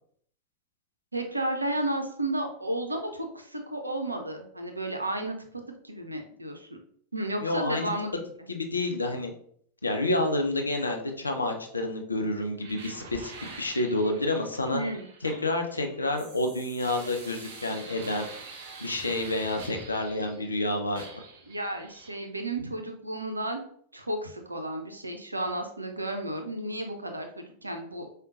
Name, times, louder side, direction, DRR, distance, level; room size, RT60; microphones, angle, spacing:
voice 1, 1.1-5.3 5.8-6.7 7.1-8.2 14.7-15.1 21.5-23.6 23.9-28.1, right 1 dB, 85° right, 4 dB, 0.4 m, -32 dB
voice 2, 7.4-7.9 8.5-9.3 9.8-13.3 13.6-14.8 15.2-18.3 18.8-21.0, left 2 dB, 80° left, 4 dB, 0.5 m, -29 dB
sound 1, 12.6-20.6 20.9-22.2, right 4 dB, 55° right, 0.7 m, -45 dB
4.9 x 2.2 x 2.5 m, 0.62 s
figure-of-eight pair, 90°, 0 cm